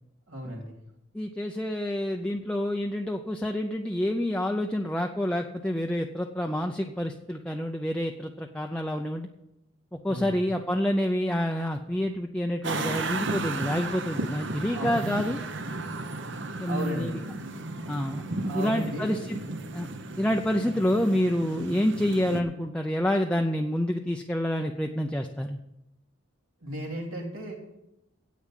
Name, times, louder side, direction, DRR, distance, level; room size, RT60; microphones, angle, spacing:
voice 1, 0.3-0.8 10.0-10.5 14.7-15.0 15.3-15.4 16.6-17.2 18.4-19.1 26.6-27.6, right 1 dB, 85° right, -1 dB, 3.3 m, -35 dB
voice 2, 1.1-9.3 10.0-15.4 16.6-17.2 17.9-18.2 18.5-19.4 19.7-19.9 20.2-25.6, left 1 dB, 5° left, 3 dB, 0.4 m, -28 dB
sound 1, 12.6-22.4, right 2 dB, 60° right, 1.0 m, -34 dB
9.8 x 8.4 x 7.5 m, 0.90 s
head